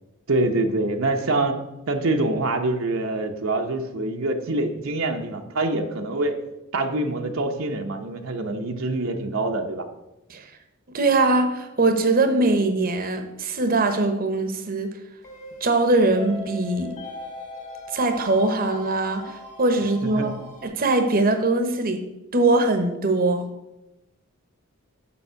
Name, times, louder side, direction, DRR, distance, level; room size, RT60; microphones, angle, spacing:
voice 1, 0.3-1.6 1.9-6.4 6.7-9.8 20.0-20.3, right 2 dB, 75° right, 4 dB, 0.8 m, -25 dB
voice 2, 10.9-15.0 15.6-17.0 17.9-20.3 20.6-22.0 22.3-23.5, right 2 dB, 45° right, 7 dB, 0.9 m, -21 dB
sound 1, 15.2-20.7, left 1 dB, 35° left, 2.0 m, -40 dB
7.1 x 5.4 x 6.7 m, 0.96 s
head